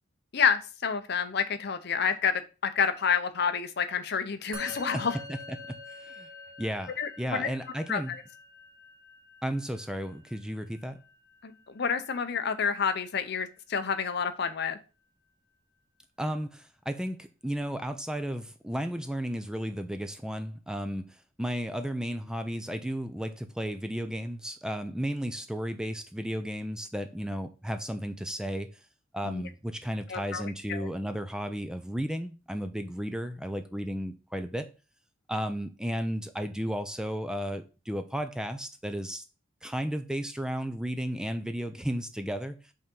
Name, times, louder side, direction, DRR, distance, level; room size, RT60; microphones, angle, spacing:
voice 1, 0.3-2.3 2.6-5.2 7.0-7.5 7.9-8.0 11.4-14.8 29.2-29.4 30.1-30.9, left 6 dB, 55° left, 0.6 m, -29 dB
Musical instrument, 4.5-14.1, left 2 dB, 65° right, 1.1 m, -48 dB
voice 2, 4.6-6.3 6.6-8.1 9.4-11.0 16.2-28.7 29.1-34.7 35.3-39.2 39.6-42.6, equal, 5° right, 0.4 m, -34 dB
5.5 x 3.5 x 5.2 m
head